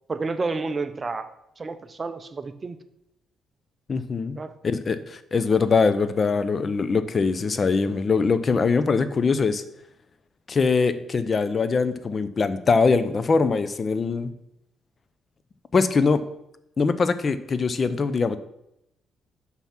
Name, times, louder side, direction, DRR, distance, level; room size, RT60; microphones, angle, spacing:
voice 1, 0.1-2.8 4.4-4.6, right 3 dB, 30° right, 10 dB, 0.6 m, -30 dB
voice 2, 3.9-9.6 10.5-14.3 15.7-16.2 16.8-18.4, left 4 dB, 40° left, 13 dB, 0.6 m, -22 dB
5.8 x 5.8 x 5.7 m, 0.83 s
cardioid pair, 90°, 0 cm